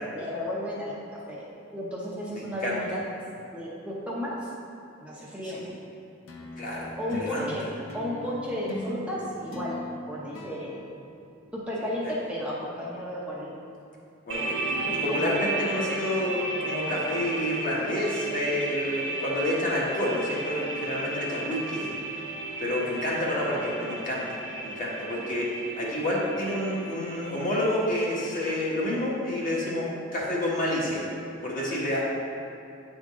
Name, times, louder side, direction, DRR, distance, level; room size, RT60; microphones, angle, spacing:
voice 1, 0.1-1.4 1.7-3.0 3.5-4.5 5.0-5.7 7.0-7.6 7.9-9.8 10.1-10.8 11.5-13.5 14.9-15.5 23.4-23.5, equal, 5° right, -6 dB, 0.7 m, -33 dB
voice 2, 2.3-2.8 5.4-5.6 6.6-7.5 12.0-12.1 14.3-22.0 22.6-24.4 24.6-31.0 31.4-32.1, left 1 dB, 45° left, -5 dB, 1.3 m, -29 dB
sound 1, 6.3-11.9, left 2 dB, 75° left, 0.7 m, -40 dB
sound 2, 14.3-28.8, right 2 dB, 75° right, 1.3 m, -34 dB
8.4 x 3.8 x 3.6 m, 2.6 s
head